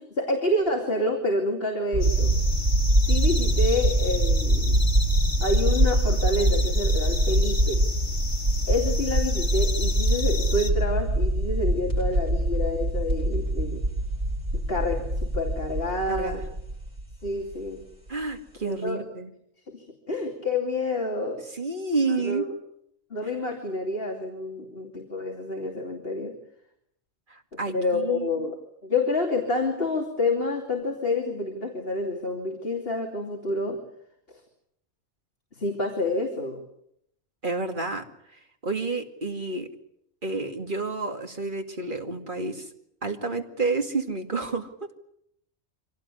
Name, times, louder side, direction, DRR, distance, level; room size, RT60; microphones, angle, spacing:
voice 1, 0.0-2.4 3.1-4.8 5.4-7.9 8.7-13.8 14.7-16.4 17.2-17.9 18.6-19.0 19.7-21.5 22.1-22.4 23.1-26.3 27.5-33.8 35.6-36.6, left 2 dB, 55° left, 2 dB, 3.1 m, -28 dB
sound 1, 1.9-17.5, right 1 dB, 85° right, 5.1 m, -24 dB
sound 2, 2.0-10.7, left 3 dB, 80° left, 2.4 m, -35 dB
voice 2, 16.1-16.4 18.1-19.3 21.5-22.5 27.3-28.5 37.4-38.0 38.6-39.7 40.2-42.7 43.0-45.0, right 3 dB, 45° right, 5 dB, 2.4 m, -30 dB
25.0 x 18.0 x 9.9 m, 0.75 s
omnidirectional pair, 1.2 m